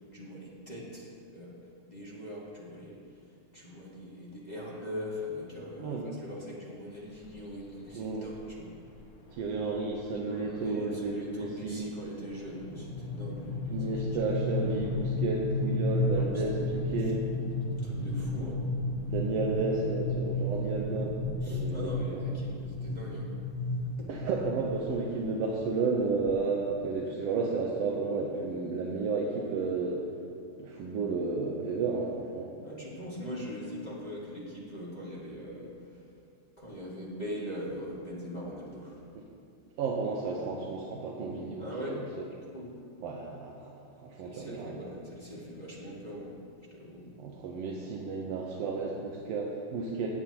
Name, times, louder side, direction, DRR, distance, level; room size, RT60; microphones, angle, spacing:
voice 1, 0.1-1.5 1.9-3.0 3.5-8.7 10.2-13.8 16.1-16.3 17.8-18.6 21.4-23.3 23.7-24.1 32.6-35.7 36.6-39.0 41.6-41.9 42.5-42.7 44.2-46.4 46.7-47.1, equal, 20° left, -7 dB, 1.3 m, -41 dB
sound 1, 7.2-7.5 8.4-8.5 8.9-9.0 9.3-9.6 10.0-26.3, left 2 dB, 70° left, 0.8 m, -33 dB
voice 2, 7.9-8.3 9.3-11.9 13.7-17.2 18.4-18.5 19.1-21.2 21.5-22.3 24.1-30.0 30.6-32.5 39.1-39.3 39.8-42.3 43.0-44.9 47.2-50.1, right 4 dB, 70° right, -1 dB, 1.6 m, -32 dB
18.0 x 8.6 x 2.9 m, 2.4 s
omnidirectional pair, 3.5 m